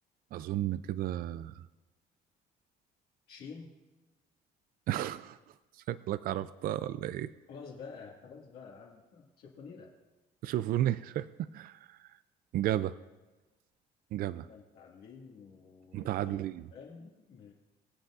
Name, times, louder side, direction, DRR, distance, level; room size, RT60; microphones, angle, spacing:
voice 1, 0.3-1.6 4.9-5.4 5.9-7.3 10.4-11.3 11.5-12.0 12.5-13.0 14.1-14.5 15.9-16.6, right 13 dB, 60° right, 15 dB, 0.4 m, -33 dB
voice 2, 3.3-3.7 7.5-9.9 14.4-16.4 16.7-17.5, left 5 dB, 70° left, -4 dB, 2.0 m, -49 dB
23.5 x 8.0 x 2.5 m, 1.2 s
cardioid pair, 110°, 17 cm